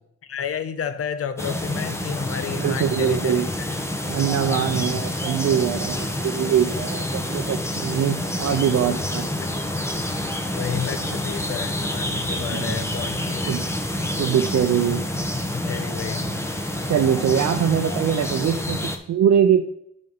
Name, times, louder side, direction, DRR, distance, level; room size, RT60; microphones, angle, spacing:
voice 1, 0.2-3.8 4.5-5.0 10.5-13.6 15.5-16.4, left 7 dB, 50° left, 11 dB, 0.9 m, -31 dB
sound 1, 1.4-19.0, left 1 dB, 10° left, 1.1 m, -28 dB
voice 2, 2.5-3.5 4.1-9.2 12.4-12.8 13.5-13.7 14.2-15.0 16.9-19.7, right 9 dB, 60° right, 4 dB, 0.8 m, -22 dB
6.7 x 5.3 x 5.5 m, 0.72 s
cardioid pair, 90°, 30 cm